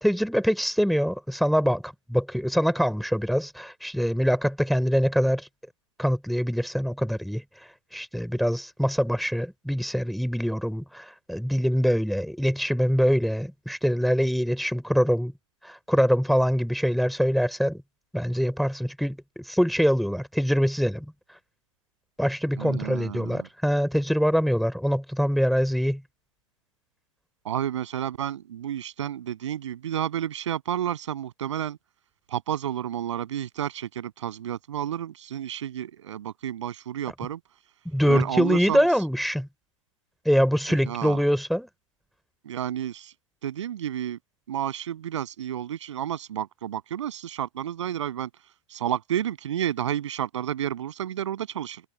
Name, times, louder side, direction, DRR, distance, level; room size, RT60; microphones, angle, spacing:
voice 1, 0.0-5.5 6.0-15.3 15.6-17.8 18.1-21.1 22.2-26.0 37.8-39.5 40.2-41.7, equal, ahead, 3.2 m, -24 dB
voice 2, 22.6-23.5 27.4-31.8 32.3-37.4 38.1-38.8 40.9-41.2 42.5-43.1 43.4-44.2 44.5-48.3 48.7-51.8, right 10 dB, 60° right, 7.2 m, -31 dB
figure-of-eight pair, 100°, 17 cm